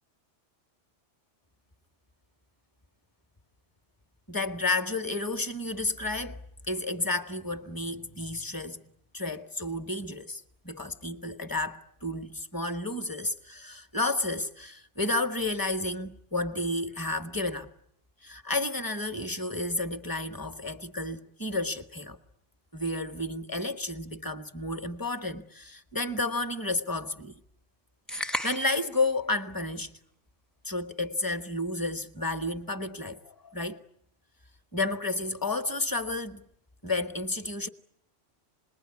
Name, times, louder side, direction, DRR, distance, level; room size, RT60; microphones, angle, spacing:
voice 1, 4.3-6.4 6.7-8.8 9.1-17.7 18.2-22.2 22.7-27.3 28.1-29.9 30.6-33.8 34.7-36.5 36.8-37.7, left 2 dB, 20° left, 1.1 m, -31 dB
sound 1, 28.1-28.9, left 1 dB, ahead, 0.8 m, -33 dB
27.5 x 21.0 x 9.7 m
omnidirectional pair, 1.2 m